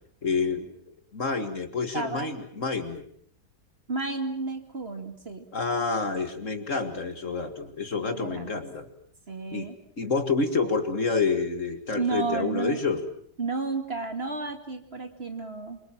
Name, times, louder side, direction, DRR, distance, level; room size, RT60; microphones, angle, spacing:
voice 1, 0.2-0.7 1.1-3.0 5.5-8.9 9.5-9.7 10.0-13.0, left 4 dB, 45° left, 8 dB, 2.3 m, -28 dB
voice 2, 1.9-2.3 3.9-5.5 8.1-8.6 9.3-9.7 11.9-12.8 13.4-15.8, right 4 dB, 35° right, 6 dB, 2.5 m, -32 dB
27.5 x 24.0 x 7.5 m, 0.63 s
omnidirectional pair, 1.8 m